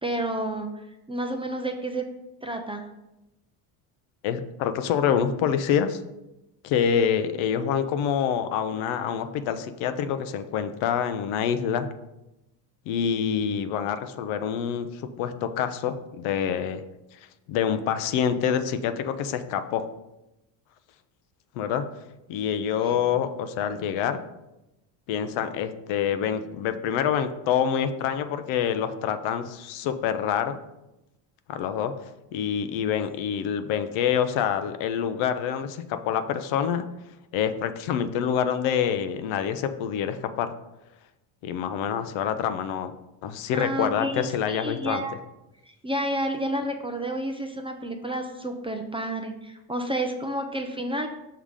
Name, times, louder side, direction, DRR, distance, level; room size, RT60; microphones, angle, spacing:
voice 1, 0.0-2.0 2.4-2.9 22.8-22.9 43.5-45.2 45.6-51.1, right 1 dB, 10° right, 4 dB, 0.4 m, -30 dB
voice 2, 4.2-6.0 6.6-11.9 12.9-16.8 17.5-19.9 21.6-21.9 22.3-24.2 25.1-30.6 31.5-31.9 32.3-36.9 37.3-40.5 41.4-42.9 43.2-45.0, left 8 dB, 75° left, 10 dB, 0.7 m, -26 dB
5.6 x 3.5 x 4.8 m, 0.94 s
supercardioid pair, 95°, 48 cm